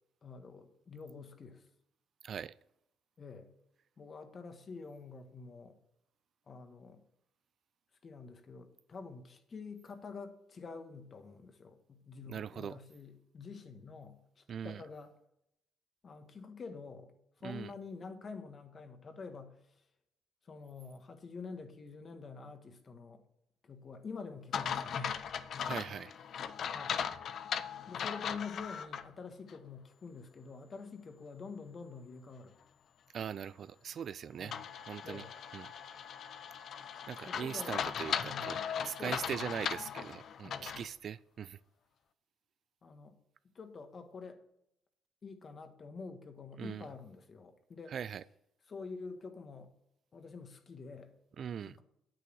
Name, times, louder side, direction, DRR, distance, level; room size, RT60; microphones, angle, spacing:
voice 1, 0.2-1.7 3.2-3.5 4.0-5.8 6.5-7.0 8.0-15.1 16.0-19.8 20.4-23.2 23.6-25.2 26.7-27.0 27.9-32.6 34.4-34.7 35.0-35.3 37.3-37.8 38.2-38.7 39.0-39.4 40.4-40.8 42.8-43.2 43.5-44.4 45.2-47.9 48.7-49.7 50.1-51.1 51.7-51.8, left 4 dB, 40° left, 1.6 m, -47 dB
voice 2, 2.2-2.5 12.3-12.8 14.5-14.8 17.4-17.7 25.6-26.1 33.1-34.5 34.9-35.2 35.5-35.7 37.1-38.6 38.8-41.6 46.6-46.8 47.9-48.2 51.4-51.8, right 8 dB, 55° right, 0.4 m, -40 dB
sound 1, 24.5-29.0 29.5-29.6 34.5-40.9, left 8 dB, 60° left, 0.7 m, -38 dB
9.2 x 8.4 x 6.3 m
cardioid pair, 85°, 0 cm